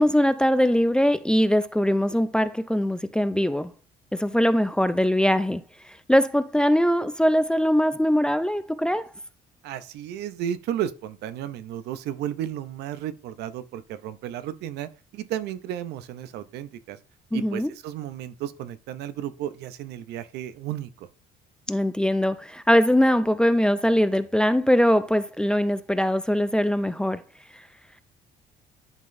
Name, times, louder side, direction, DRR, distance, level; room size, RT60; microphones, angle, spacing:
voice 1, 0.0-3.7 4.1-5.6 6.1-9.1 17.3-17.7 21.7-27.2, equal, 5° left, 0.4 m, -21 dB
voice 2, 9.6-17.0 17.3-21.1, right 11 dB, 80° right, 0.5 m, -33 dB
10.5 x 3.8 x 2.6 m
cardioid pair, 110°, 17 cm